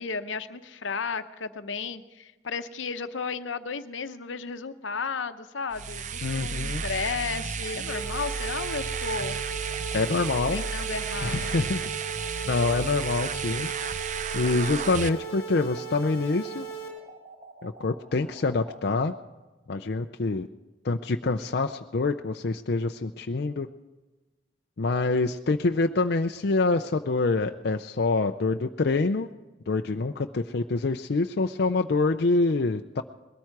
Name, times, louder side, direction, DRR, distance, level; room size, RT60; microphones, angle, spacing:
voice 1, 0.0-9.4 10.5-11.5, left 5 dB, 80° left, 10 dB, 0.8 m, -34 dB
sound 1, 5.7-15.1, right 6 dB, 40° right, 0.4 m, -33 dB
voice 2, 6.2-6.8 9.9-10.6 11.2-11.9 12.5-13.7 14.3-16.7 17.6-19.1 19.7-20.5 20.8-23.7 24.8-29.3 29.7-33.0, left 3 dB, 55° left, 5 dB, 0.5 m, -26 dB
sound 2, 6.8-19.1, right 3 dB, 25° right, 1.7 m, -49 dB
sound 3, 7.9-16.9, right 6 dB, 20° left, 3.8 m, -37 dB
20.5 x 13.5 x 4.7 m, 1.2 s
head